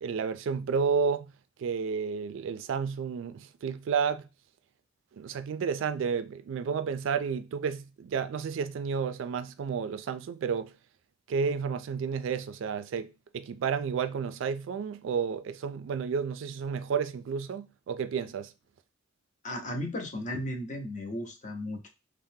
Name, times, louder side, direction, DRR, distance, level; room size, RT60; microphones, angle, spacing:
voice 1, 0.0-1.3 1.6-4.2 5.2-10.7 11.3-18.5, right 6 dB, 65° right, 0.3 m, -31 dB
voice 2, 19.4-21.9, left 1 dB, 40° left, 0.7 m, -35 dB
3.6 x 2.1 x 2.7 m
head